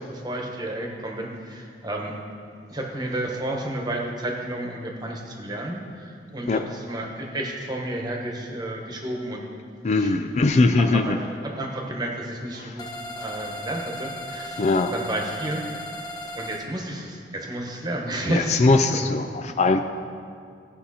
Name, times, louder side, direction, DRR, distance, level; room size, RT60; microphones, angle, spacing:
voice 1, 0.0-2.2 2.7-9.4 10.0-12.9 13.1-15.6 16.3-19.1, right 1 dB, 25° right, 0 dB, 1.2 m, -31 dB
voice 2, 9.8-11.2 12.6-12.7 14.6-14.9 18.3-19.8, left 3 dB, 40° left, 7 dB, 0.4 m, -21 dB
sound 1, 12.8-16.6, equal, 25° left, 0.8 m, -36 dB
16.5 x 5.6 x 4.2 m, 2.3 s
head